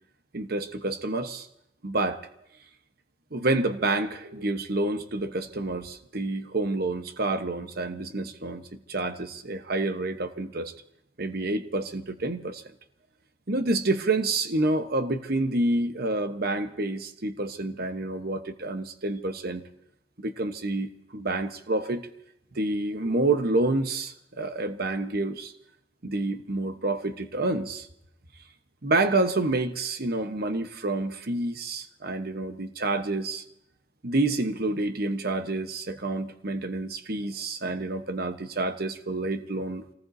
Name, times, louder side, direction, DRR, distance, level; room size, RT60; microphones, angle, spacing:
voice 1, 0.3-1.5 1.8-2.2 3.3-10.7 11.2-12.6 13.5-19.6 20.2-22.1 22.5-25.5 26.0-27.9 28.8-33.4 34.0-39.8, right 2 dB, 50° right, 8 dB, 1.1 m, -28 dB
27.5 x 19.0 x 2.7 m, 0.77 s
head